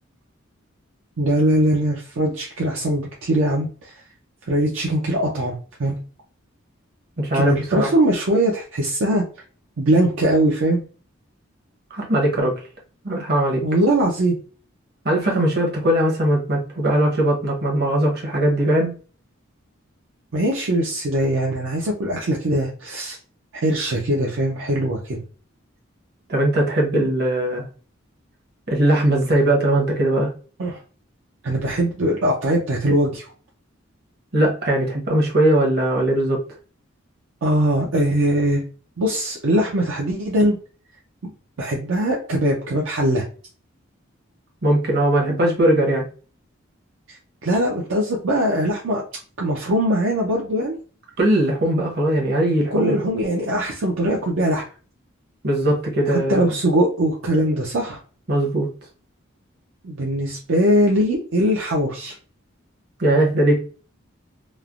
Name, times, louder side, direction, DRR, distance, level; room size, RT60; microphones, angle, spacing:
voice 1, 1.2-3.9 4.5-6.0 7.3-9.2 9.8-10.8 13.6-14.4 20.3-23.2 23.6-25.2 30.6-30.8 31.4-33.2 37.4-38.6 39.0-40.6 41.2-41.3 41.6-43.2 47.1-49.0 49.4-50.8 52.7-54.6 56.1-58.0 59.8-62.2, right 1 dB, 70° right, -2 dB, 0.5 m, -21 dB
voice 2, 7.2-7.9 11.9-12.5 13.0-13.6 15.0-18.9 26.3-27.6 28.7-30.3 34.3-36.4 44.6-46.0 51.2-53.0 55.4-56.5 58.3-58.7 63.0-63.6, right 1 dB, 50° right, -1 dB, 0.9 m, -19 dB
3.1 x 2.0 x 2.4 m, 0.38 s
head